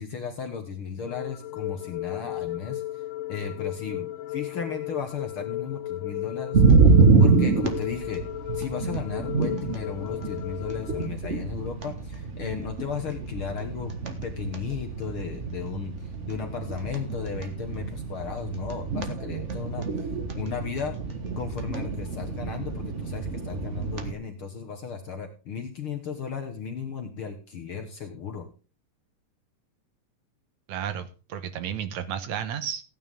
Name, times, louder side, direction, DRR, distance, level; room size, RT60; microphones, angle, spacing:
voice 1, 0.0-3.0 3.3-6.8 7.2-8.2 8.5-14.0 14.2-20.1 20.4-21.0 21.4-28.5, left 6 dB, 55° left, 4 dB, 1.7 m, -35 dB
sound 1, 1.0-11.1, left 14 dB, 80° left, 2.4 m, -35 dB
sound 2, 6.5-24.1, right 4 dB, 50° right, 0.8 m, -26 dB
voice 2, 30.7-32.8, right 9 dB, 70° right, 11 dB, 2.2 m, -32 dB
15.5 x 9.6 x 3.7 m, 0.34 s
omnidirectional pair, 3.7 m